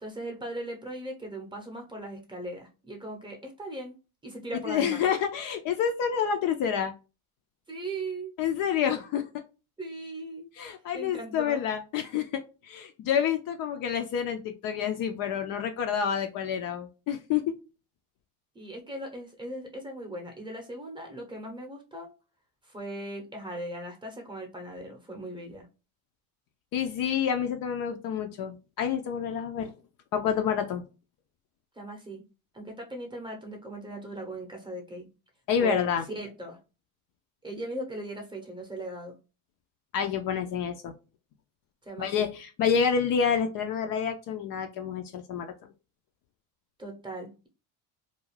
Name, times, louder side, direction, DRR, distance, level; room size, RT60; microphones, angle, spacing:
voice 1, 0.0-5.1 7.7-8.3 9.8-10.5 10.9-11.6 18.5-22.1 22.6-25.7 31.7-32.2 32.5-35.1 35.6-35.8 36.1-36.6 37.4-39.2 41.8-42.1 46.8-47.5, right 1 dB, 10° right, 1 dB, 0.7 m, -38 dB
voice 2, 4.7-6.9 8.4-9.3 10.6-17.5 26.7-29.7 30.1-30.8 35.5-36.0 39.9-40.9 42.0-45.5, left 7 dB, 50° left, 6 dB, 0.4 m, -28 dB
2.4 x 2.2 x 3.1 m, 0.30 s
supercardioid pair, 110°, 45 cm